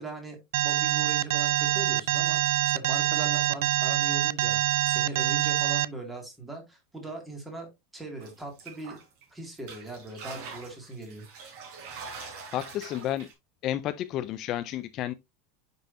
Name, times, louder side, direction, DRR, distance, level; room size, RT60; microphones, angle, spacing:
voice 1, 0.0-9.0 9.3-11.2, right 2 dB, 10° right, 2.1 m, -40 dB
Alarm, 0.5-5.9, right 15 dB, 70° right, 0.4 m, -25 dB
sound 1, 8.2-9.2 9.6-13.3, right 5 dB, 45° right, 3.9 m, -44 dB
voice 2, 12.5-13.3 13.6-15.1, left 12 dB, 30° left, 0.3 m, -31 dB
9.1 x 5.4 x 2.6 m
supercardioid pair, 175°, 0 cm